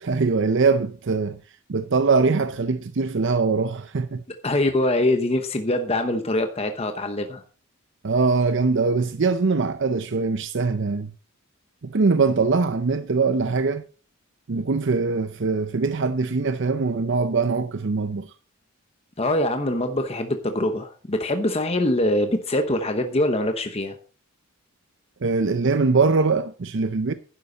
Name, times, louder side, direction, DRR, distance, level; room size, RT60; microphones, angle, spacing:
voice 1, 0.0-1.4 1.7-4.2 8.0-11.1 11.8-13.8 14.5-18.3 25.2-27.1, right 4 dB, 55° right, 0.6 m, -22 dB
voice 2, 4.4-7.4 19.2-23.9, left 1 dB, 30° left, 1.0 m, -23 dB
11.5 x 10.5 x 4.0 m
head